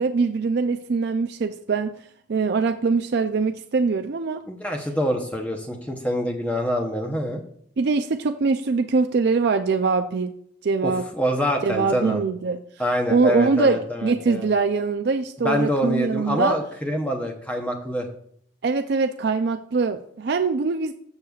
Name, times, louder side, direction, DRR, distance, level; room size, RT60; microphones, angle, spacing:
voice 1, 0.0-2.0 2.3-4.4 7.8-10.3 10.6-11.0 11.6-12.6 13.1-16.6 18.6-20.9, right 4 dB, 55° right, 8 dB, 0.4 m, -23 dB
voice 2, 4.5-7.4 10.8-12.2 12.8-14.5 15.4-18.1, equal, 5° left, 3 dB, 0.8 m, -25 dB
16.0 x 6.6 x 2.4 m, 0.66 s
head